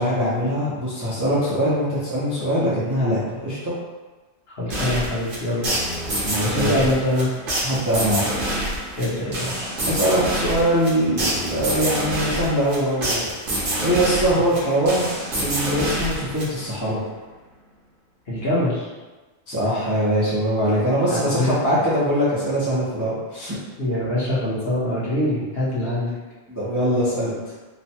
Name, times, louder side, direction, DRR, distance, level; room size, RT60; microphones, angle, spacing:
voice 1, 0.0-3.7 6.2-6.8 7.6-8.3 9.9-13.3 13.8-15.1 15.4-17.0 19.5-23.6 26.5-27.4, equal, 20° right, -10 dB, 0.5 m, -22 dB
voice 2, 4.6-5.7 6.4-7.3 9.0-9.7 18.3-18.9 21.1-21.8 23.8-26.2, left 1 dB, 55° left, -8 dB, 1.1 m, -24 dB
sound 1, 4.7-16.8, right 1 dB, 50° right, 0.9 m, -27 dB
3.0 x 2.2 x 2.8 m, 1.2 s
omnidirectional pair, 1.3 m